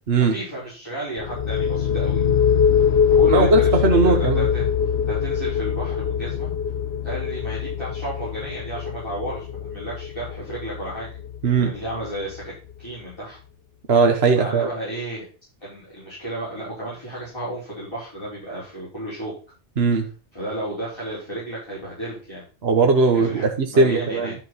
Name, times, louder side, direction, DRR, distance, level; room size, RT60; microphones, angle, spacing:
voice 1, 0.3-2.2 3.1-4.7 5.1-6.5 7.0-11.1 11.6-12.5 12.8-13.4 14.3-15.3 15.6-19.3 20.3-22.4 23.1-24.4, right 1 dB, 25° left, -10 dB, 4.8 m, -32 dB
sound 1, 1.2-12.7, left 8 dB, 65° left, 1.0 m, -23 dB
voice 2, 3.3-4.5 11.4-11.7 13.9-14.7 19.8-20.1 22.6-24.3, right 4 dB, 60° right, 4 dB, 1.4 m, -18 dB
11.5 x 5.9 x 4.0 m, 0.36 s
omnidirectional pair, 1.2 m